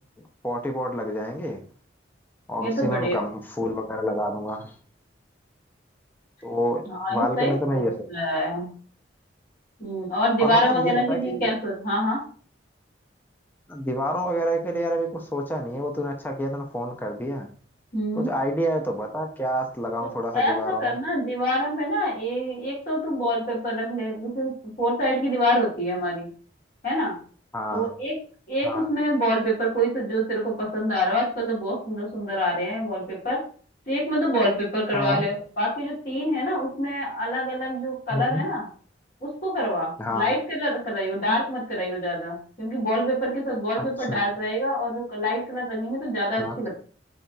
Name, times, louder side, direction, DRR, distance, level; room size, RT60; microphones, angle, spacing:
voice 1, 0.4-1.6 2.5-4.7 6.4-6.8 7.1-7.9 10.4-11.5 13.7-17.5 18.2-20.9 27.5-27.9 28.6-28.9 34.9-35.2 38.1-38.4 40.0-40.3 43.8-44.2 46.4-46.6, equal, 10° left, 3 dB, 0.4 m, -28 dB
voice 2, 2.6-3.2 6.8-8.7 9.8-12.2 17.9-18.3 20.0-24.5 24.8-26.3 26.8-27.2 27.7-28.1 28.5-33.4 33.9-38.7 39.2-46.8, equal, 50° left, -10 dB, 1.9 m, -26 dB
3.9 x 3.8 x 2.2 m, 0.43 s
head